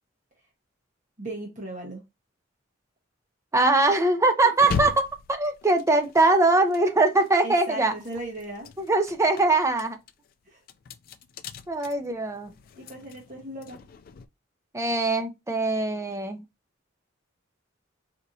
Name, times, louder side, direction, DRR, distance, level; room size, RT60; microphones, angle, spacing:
voice 1, 1.2-2.0 4.2-4.9 7.4-8.7 10.4-10.6 12.7-13.8, right 1 dB, 40° right, 1.2 m, -37 dB
voice 2, 3.5-7.9 8.9-10.0 11.7-12.5 14.7-16.4, right 2 dB, 15° right, 0.5 m, -22 dB
sound 1, 4.6-7.5 7.9-14.3, left 6 dB, 50° left, 0.3 m, -39 dB
4.2 x 2.8 x 2.6 m
head